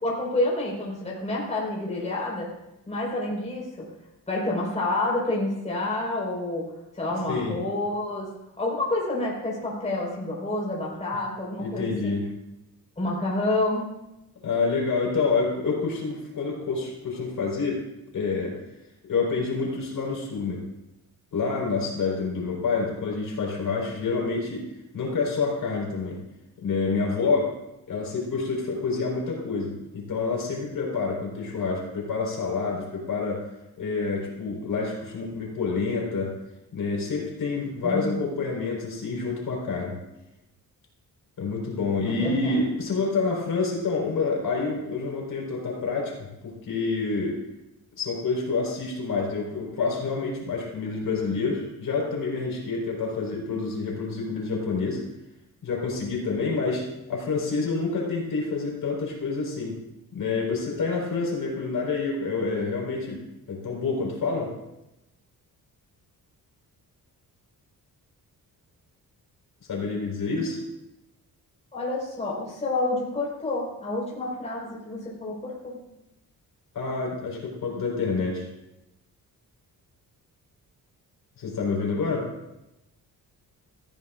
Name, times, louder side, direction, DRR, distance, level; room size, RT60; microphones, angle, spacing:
voice 1, 0.0-2.5 2.9-3.9 4.3-6.7 6.9-8.3 8.6-12.2 13.0-13.9 37.8-38.2 42.1-42.6 71.7-75.7, left 2 dB, 20° left, -4 dB, 4.6 m, -28 dB
voice 2, 11.6-12.2 14.4-17.8 18.1-18.6 19.1-20.6 21.3-24.7 24.9-26.2 26.6-27.5 27.9-33.5 33.8-36.3 36.7-40.0 41.4-47.4 48.0-55.0 55.6-59.8 60.1-63.2 63.5-64.5 69.7-70.6 76.7-78.5 81.4-82.3, left 4 dB, 65° left, -2 dB, 4.4 m, -28 dB
18.5 x 15.0 x 2.5 m, 0.92 s
wide cardioid pair, 170°, 35 cm